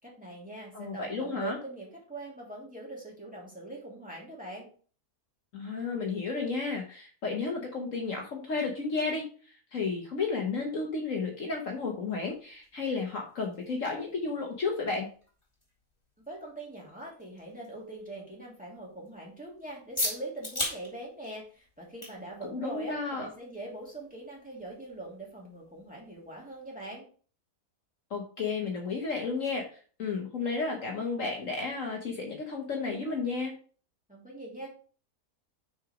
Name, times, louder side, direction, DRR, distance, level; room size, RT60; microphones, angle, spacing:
voice 1, 0.0-4.7 16.3-27.0 34.1-34.7, right 2 dB, 5° right, -4 dB, 2.7 m, -42 dB
voice 2, 0.7-1.6 5.5-15.1 22.5-23.3 28.1-29.6 30.0-33.5, left 4 dB, 55° left, 1 dB, 1.5 m, -32 dB
sound 1, 11.6-26.9, left 1 dB, 15° left, 3.3 m, -43 dB
6.2 x 5.1 x 5.0 m, 0.41 s
omnidirectional pair, 1.7 m